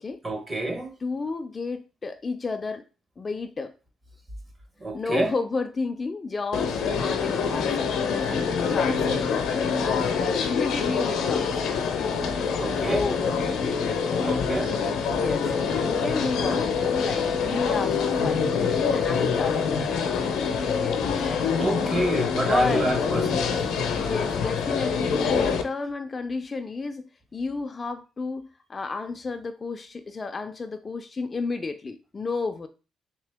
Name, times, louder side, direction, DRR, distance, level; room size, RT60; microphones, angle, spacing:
voice 1, 0.2-0.9 4.8-5.3 12.6-13.0 14.2-14.7 21.6-23.6, right 2 dB, 30° right, 1.0 m, -28 dB
voice 2, 1.0-2.8 3.2-3.7 4.9-9.3 9.8-12.2 12.6-14.4 15.1-20.4 20.7-21.0 22.3-22.9 23.9-27.0 27.3-32.7, left 4 dB, 30° left, 0.4 m, -32 dB
washington airspace quiet, 6.5-25.6, left 6 dB, 80° left, 0.6 m, -25 dB
3.7 x 2.8 x 3.4 m
cardioid pair, 90°, 0 cm